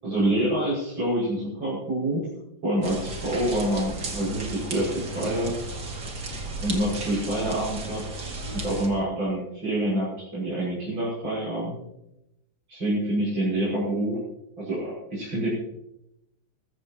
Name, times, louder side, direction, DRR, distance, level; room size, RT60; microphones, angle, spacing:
voice 1, 0.0-2.2 2.6-5.5 6.6-11.8 12.7-14.2 14.6-15.5, right 1 dB, 80° right, -8 dB, 6.9 m, -27 dB
sound 1, 2.8-8.9, right 2 dB, 60° right, 3.2 m, -34 dB
22.5 x 15.0 x 3.0 m, 0.86 s
omnidirectional pair, 2.1 m